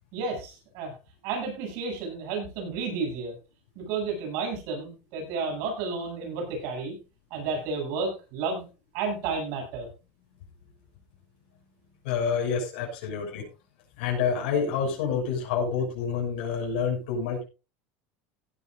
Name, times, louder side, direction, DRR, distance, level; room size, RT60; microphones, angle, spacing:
voice 1, 0.1-0.9 1.2-3.4 3.7-7.0 7.3-8.7 8.9-9.9, right 4 dB, 50° right, 2 dB, 7.8 m, -31 dB
voice 2, 12.0-13.4 14.0-17.4, left 6 dB, 70° left, -1 dB, 6.7 m, -28 dB
17.0 x 13.0 x 2.6 m, 0.30 s
cardioid pair, 175°, 6 cm